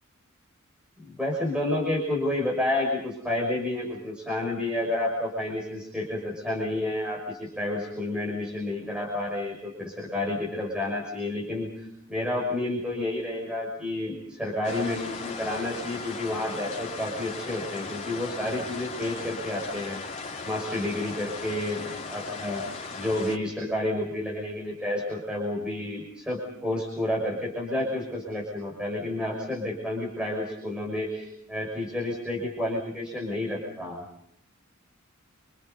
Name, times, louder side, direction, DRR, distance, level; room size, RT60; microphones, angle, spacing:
voice 1, 1.0-20.0 20.4-21.8 22.1-22.6 23.0-34.0, left 1 dB, 5° right, -3 dB, 6.2 m, -30 dB
sound 1, 14.6-23.4, left 4 dB, 35° left, 3.2 m, -37 dB
28.0 x 27.5 x 5.5 m, 0.74 s
head